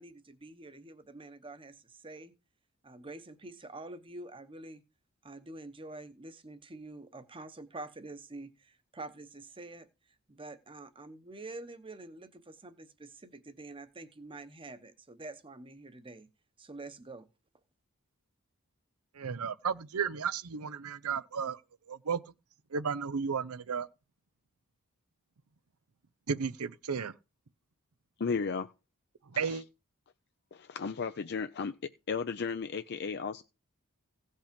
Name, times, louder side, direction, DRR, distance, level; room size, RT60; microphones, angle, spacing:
voice 1, 0.0-2.3 2.8-4.8 5.2-9.9 10.3-16.3 16.6-17.3, right 2 dB, 25° right, 1.0 m, -47 dB
voice 2, 19.1-21.6 21.9-22.2 22.7-23.9 26.3-27.1 29.3-29.6, right 6 dB, 90° right, 0.6 m, -33 dB
voice 3, 28.2-28.7 29.5-29.6 30.5-31.8 32.1-33.4, left 5 dB, 50° left, 0.5 m, -34 dB
16.5 x 5.5 x 5.2 m
head